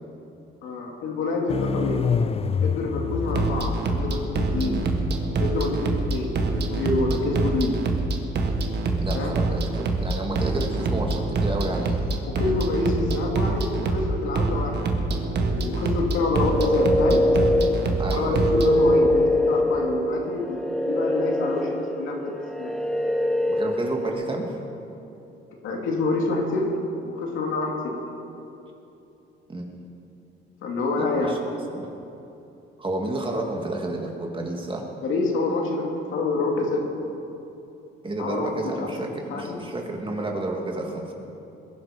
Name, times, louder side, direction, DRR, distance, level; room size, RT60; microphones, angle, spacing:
voice 1, 0.6-2.0 2.6-4.8 5.4-7.8 9.1-9.3 12.2-14.9 15.2-17.2 17.9-22.7 25.6-26.7 27.0-27.9 30.6-31.7 35.0-36.9 38.2-39.6, left 3 dB, 80° left, -1 dB, 2.7 m, -27 dB
sound 1, 1.5-7.0, left 6 dB, 30° left, 0.5 m, -29 dB
sound 2, 3.2-18.7, right 3 dB, 60° right, 1.7 m, -26 dB
voice 2, 9.0-12.2 18.0-18.5 23.5-24.5 29.5-29.9 31.0-31.4 31.7-31.9 32.8-34.9 38.0-41.1, right 2 dB, 25° right, 1 dB, 2.5 m, -30 dB
sound 3, 16.3-24.1, left 1 dB, 5° left, 0.9 m, -23 dB
21.0 x 11.0 x 5.3 m, 2.9 s
cardioid pair, 90°, 20 cm